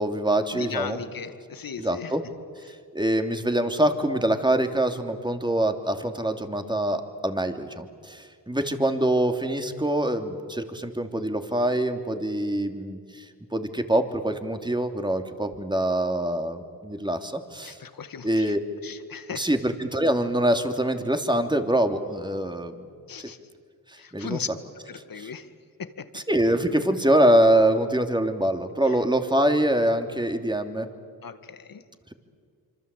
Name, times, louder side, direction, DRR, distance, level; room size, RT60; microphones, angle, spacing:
voice 1, 0.0-1.0 1.8-2.2 2.9-13.2 13.5-17.8 18.2-18.6 19.4-22.9 24.1-24.4 25.2-25.3 26.1-30.9, right 1 dB, 10° right, 6 dB, 2.9 m, -24 dB
voice 2, 0.5-2.1 2.7-2.8 17.6-18.5 18.8-19.5 23.1-23.4 24.0-24.5 24.9-25.5 25.8-26.2 28.9-29.0 31.2-31.8, left 6 dB, 55° left, 11 dB, 1.9 m, -37 dB
26.0 x 25.0 x 8.4 m, 2.1 s
supercardioid pair, 50°, 40 cm